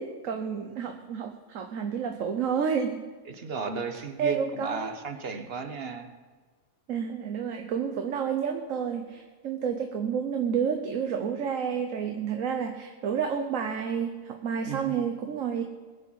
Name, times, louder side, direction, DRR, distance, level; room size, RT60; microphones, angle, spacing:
voice 1, 0.0-3.0 4.2-4.9 6.9-15.6, right 7 dB, 70° right, 5 dB, 1.3 m, -30 dB
voice 2, 3.4-6.1 14.6-15.0, right 5 dB, 45° right, 7 dB, 1.2 m, -34 dB
21.5 x 7.5 x 5.6 m, 1.4 s
omnidirectional pair, 1.5 m